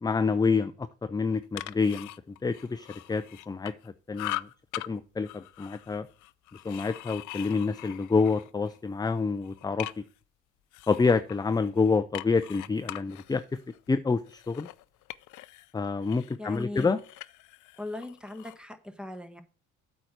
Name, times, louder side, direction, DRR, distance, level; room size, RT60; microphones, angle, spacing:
voice 1, 0.0-2.1 2.4-3.7 4.1-4.5 4.9-6.1 6.6-9.9 10.9-13.4 13.9-14.7 15.7-17.0, left 4 dB, 15° left, 11 dB, 0.4 m, -27 dB
sound 1, 1.3-3.9 4.1-4.9 5.2-8.8 9.2-10.2 10.7-15.7 16.0-18.6, left 17 dB, 85° left, 0.5 m, -42 dB
voice 2, 16.4-16.9 17.8-19.4, left 1 dB, 5° right, 9 dB, 1.2 m, -39 dB
8.4 x 4.6 x 6.5 m, 0.38 s
cardioid pair, 90°, 30 cm